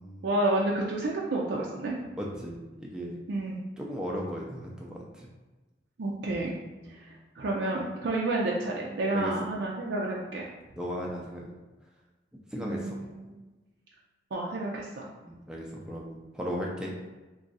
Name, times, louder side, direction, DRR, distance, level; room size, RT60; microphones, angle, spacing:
voice 1, 0.2-1.9 3.3-3.6 6.0-6.5 7.0-10.5 12.6-13.2 14.3-15.1, right 2 dB, 65° right, -3 dB, 0.4 m, -30 dB
voice 2, 2.2-3.2 3.8-5.3 6.8-6.9 9.1-9.3 10.8-11.5 12.5-13.0 15.3-16.9, equal, 5° right, -3 dB, 0.4 m, -36 dB
3.0 x 2.4 x 3.9 m, 1.2 s
head